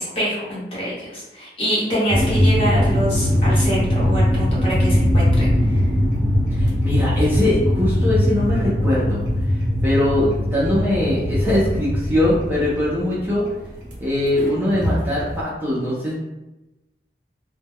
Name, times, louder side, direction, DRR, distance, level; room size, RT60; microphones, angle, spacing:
voice 1, 0.0-5.8, equal, 30° left, -7 dB, 0.9 m, -25 dB
sound 1, 2.1-15.4, equal, 45° right, 0.7 m, -21 dB
voice 2, 6.5-9.2 9.8-13.4 14.0-16.1, left 1 dB, 10° right, -8 dB, 0.4 m, -21 dB
2.1 x 2.0 x 3.5 m, 1.0 s
head